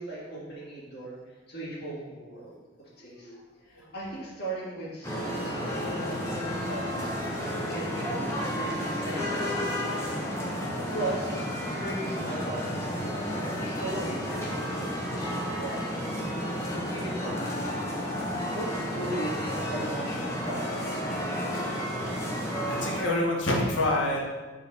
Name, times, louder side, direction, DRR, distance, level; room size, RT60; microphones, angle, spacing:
voice 1, 0.0-3.3 3.6-6.4 6.7-10.3 10.7-11.3 11.7-16.4 16.9-17.9 18.5-22.0, right 1 dB, 55° left, -7 dB, 2.1 m, -38 dB
sound 1, 5.0-23.0, equal, 15° left, 1.0 m, -32 dB
voice 2, 22.4-24.2, left 1 dB, 70° left, -3 dB, 1.5 m, -28 dB
4.7 x 4.2 x 5.6 m, 1.3 s
head